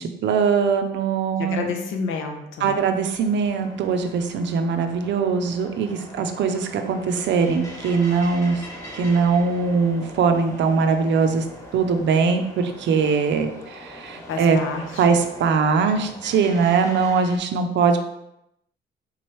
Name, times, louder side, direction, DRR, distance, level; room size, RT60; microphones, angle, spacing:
voice 1, 0.0-1.7 2.6-8.6 8.9-11.4 11.7-14.6 15.0-18.0, right 5 dB, 65° right, 7 dB, 0.5 m, -21 dB
voice 2, 1.4-2.7 14.3-15.0, left 5 dB, 85° left, 4 dB, 0.6 m, -29 dB
sound 1, 2.6-17.4, equal, 15° left, 1.1 m, -41 dB
3.7 x 3.1 x 3.0 m, 0.84 s
cardioid pair, 90°, 20 cm